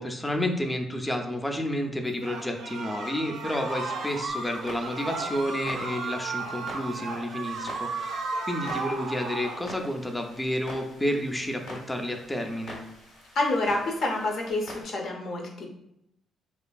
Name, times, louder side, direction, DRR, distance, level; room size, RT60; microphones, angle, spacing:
voice 1, 0.0-12.8, left 1 dB, 10° left, 3 dB, 0.4 m, -30 dB
sound 1, 2.2-9.6, right 3 dB, 80° right, 0.4 m, -34 dB
Clock, 4.3-14.8, left 1 dB, 85° left, 1.1 m, -46 dB
voice 2, 13.3-15.7, left 2 dB, 65° left, 0 dB, 0.6 m, -28 dB
2.9 x 2.5 x 2.2 m, 0.80 s
cardioid pair, 80°, 0 cm